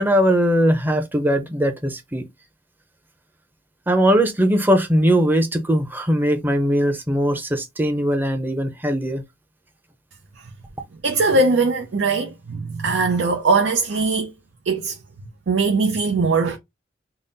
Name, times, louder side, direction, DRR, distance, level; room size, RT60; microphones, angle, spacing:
voice 1, 0.0-2.2 3.9-9.2, equal, 10° right, 0.6 m, -20 dB
voice 2, 11.0-14.3 14.6-16.6, right 3 dB, 85° right, 0.6 m, -21 dB
3.8 x 2.0 x 3.9 m
head